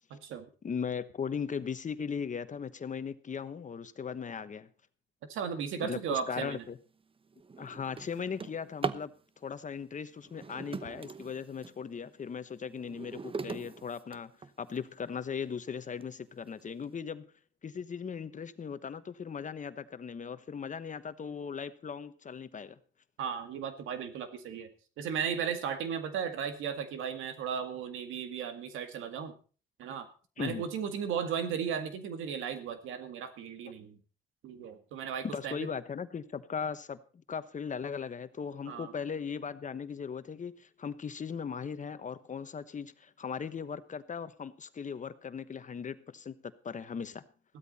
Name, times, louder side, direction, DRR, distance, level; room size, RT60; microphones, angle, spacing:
voice 1, 0.1-0.5 5.3-6.6 23.2-24.7 25.0-29.3 29.8-30.1 30.4-34.0 34.4-35.7 38.7-38.9, right 7 dB, 85° right, 2.0 m, -35 dB
voice 2, 0.6-4.7 5.8-6.8 7.6-9.1 9.4-14.3 14.6-17.3 17.6-22.8 30.4-30.6 35.3-46.3 46.6-47.2, left 6 dB, 40° left, 1.2 m, -38 dB
Drawer open or close, 6.5-6.7 7.2-9.1 10.2-11.8 12.3-14.8 15.4-15.5 16.0-16.1 16.5-16.8, right 5 dB, 25° right, 0.9 m, -41 dB
15.5 x 13.0 x 4.2 m
cardioid pair, 90°, 20 cm